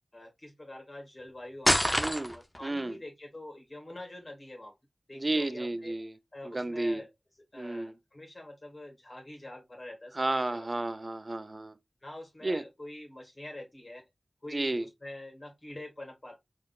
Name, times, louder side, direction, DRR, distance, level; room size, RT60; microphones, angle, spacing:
voice 1, 0.1-4.7 5.1-5.9 6.3-7.1 7.5-10.7 12.0-14.0 14.4-16.4, left 1 dB, 45° left, 1.9 m, -46 dB
sound 1, 1.6-2.6, equal, 10° left, 0.6 m, -25 dB
voice 2, 2.0-2.3 2.6-3.0 5.1-6.1 6.4-7.0 7.5-7.9 10.1-11.7 12.4-12.6 14.5-14.8, right 2 dB, 45° right, 0.6 m, -32 dB
3.9 x 3.3 x 2.4 m
cardioid pair, 45°, 0 cm